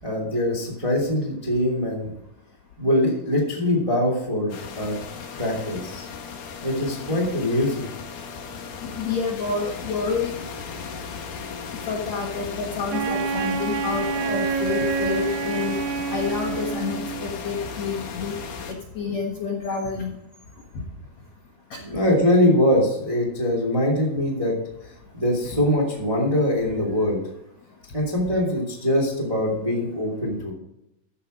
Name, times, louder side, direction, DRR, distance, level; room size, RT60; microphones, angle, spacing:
voice 1, 0.0-2.1 2.8-5.0 5.4-6.0 6.6-7.9 21.8-24.5 25.1-27.2 27.9-30.5, left 1 dB, 10° right, -1 dB, 1.9 m, -23 dB
sound 1, 4.5-18.7, left 5 dB, 80° left, 3.9 m, -36 dB
voice 2, 8.8-10.3 11.9-15.8 16.1-18.4 19.0-20.1 20.8-20.9, left 5 dB, 55° left, -2 dB, 2.1 m, -28 dB
Wind instrument woodwind instrument, 12.9-17.3, right 6 dB, 85° right, 2.9 m, -27 dB
14.0 x 5.7 x 5.1 m, 0.84 s
omnidirectional pair, 4.7 m